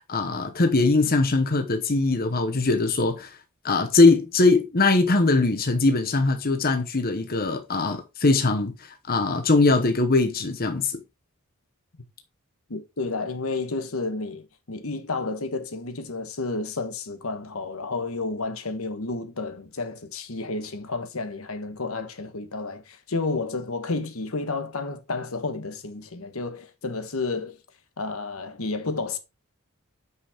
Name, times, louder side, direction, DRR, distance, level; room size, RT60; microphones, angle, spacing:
voice 1, 0.1-3.3 3.6-11.0, left 3 dB, 45° left, 1.1 m, -21 dB
voice 2, 12.7-27.6 28.0-29.2, left 3 dB, 75° left, 1.3 m, -31 dB
9.3 x 5.7 x 3.6 m
head